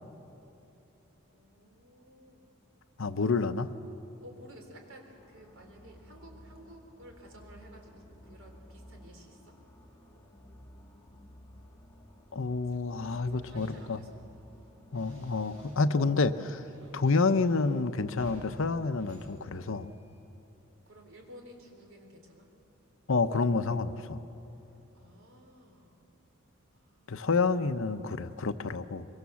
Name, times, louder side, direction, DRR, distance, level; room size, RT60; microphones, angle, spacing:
voice 1, 1.3-2.6 4.2-9.5 12.7-12.8 13.3-14.2 20.9-22.5 24.9-26.1 26.7-27.3, equal, 70° right, 2 dB, 4.0 m, -54 dB
voice 2, 3.0-3.7 12.3-14.0 14.9-16.6 16.9-19.9 23.1-24.2 27.1-29.1, left 4 dB, 70° left, 11 dB, 0.8 m, -28 dB
sound 1, 5.2-15.8, left 1 dB, 15° left, 1.7 m, -54 dB
sound 2, 13.1-16.0 16.3-20.2, right 1 dB, 85° right, 6.6 m, -55 dB
23.5 x 23.5 x 7.2 m, 2.9 s
head